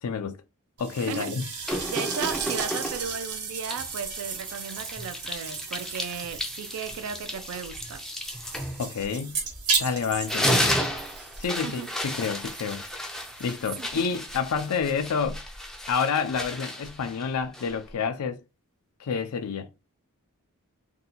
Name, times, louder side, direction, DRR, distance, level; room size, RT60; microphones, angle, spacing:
voice 1, 0.0-0.4 0.8-1.9 8.8-9.4 9.8-10.8 11.4-12.8 13.4-15.4 15.9-18.4 19.0-19.7, left 6 dB, 85° left, 0.4 m, -29 dB
sound 1, 0.8-15.0, right 5 dB, 85° right, 1.2 m, -36 dB
voice 2, 1.0-1.4 1.9-8.0 11.6-11.9 13.8-14.0, right 6 dB, 70° right, 0.3 m, -35 dB
sound 2, 1.7-3.2 3.7-9.8 10.1-17.9, equal, ahead, 0.4 m, -33 dB
2.7 x 2.2 x 4.0 m
head